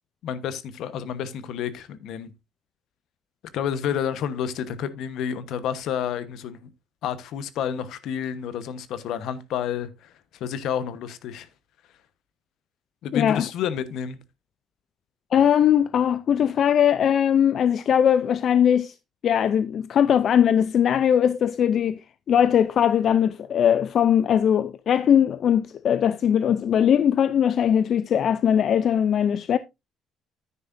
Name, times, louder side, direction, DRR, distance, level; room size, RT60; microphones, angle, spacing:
voice 1, 0.2-2.3 3.5-6.7 7.0-10.1 10.4-11.5 13.0-14.2, left 8 dB, 70° left, 1.1 m, -30 dB
voice 2, 13.1-13.5 15.3-18.9 19.2-22.0 22.3-29.6, left 9 dB, 50° left, 0.5 m, -20 dB
9.7 x 9.7 x 2.6 m
cardioid pair, 125°, 0 cm